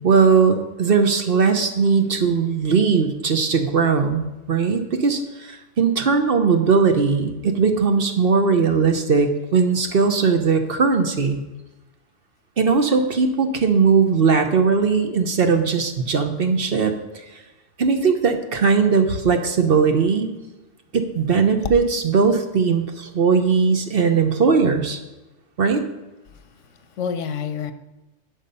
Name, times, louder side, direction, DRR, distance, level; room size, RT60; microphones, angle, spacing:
voice 1, 0.0-11.4 12.6-17.0 17.8-20.3 20.9-25.0 25.6-25.8, right 5 dB, 50° right, 6 dB, 1.0 m, -19 dB
voice 2, 26.3-27.7, left 7 dB, 80° left, 11 dB, 1.1 m, -30 dB
11.0 x 5.9 x 5.4 m, 1.1 s
omnidirectional pair, 1.3 m